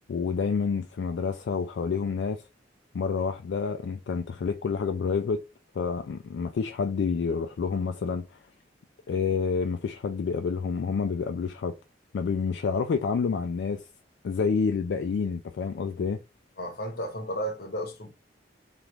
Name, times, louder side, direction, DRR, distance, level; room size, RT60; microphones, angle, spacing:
voice 1, 0.1-2.4 2.9-5.4 5.8-8.4 9.1-11.7 12.1-13.9 14.2-16.2, left 5 dB, 75° left, 0.3 m, -28 dB
voice 2, 16.6-18.1, equal, 60° left, 0.8 m, -33 dB
3.0 x 2.4 x 3.3 m
head